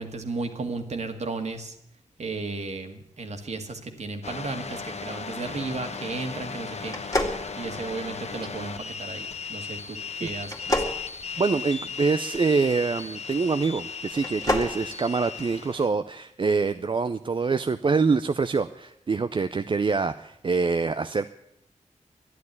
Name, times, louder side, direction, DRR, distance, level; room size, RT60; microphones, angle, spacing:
voice 1, 0.0-1.8 2.2-7.0 7.6-10.8, right 3 dB, 60° right, 5 dB, 1.9 m, -34 dB
sound 1, 4.2-15.9, left 6 dB, 55° left, 1.1 m, -36 dB
sound 2, 6.9-8.2 10.4-12.0 14.1-14.8, left 1 dB, 25° left, 2.1 m, -29 dB
voice 2, 11.4-21.3, right 4 dB, 40° right, 11 dB, 0.5 m, -25 dB
12.0 x 11.0 x 9.5 m, 0.78 s
wide cardioid pair, 115°, 13 cm